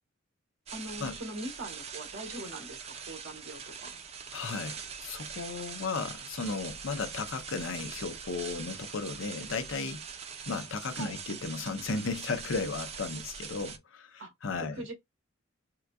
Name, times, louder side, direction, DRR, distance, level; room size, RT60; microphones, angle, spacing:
sound 1, 0.7-13.8, right 6 dB, 30° right, 0.4 m, -43 dB
voice 1, 0.7-4.0 10.9-11.2 14.2-14.9, right 1 dB, 70° right, 1.5 m, -42 dB
voice 2, 4.3-10.0 10.5-14.8, left 4 dB, 75° left, 0.6 m, -35 dB
3.7 x 2.3 x 2.3 m
head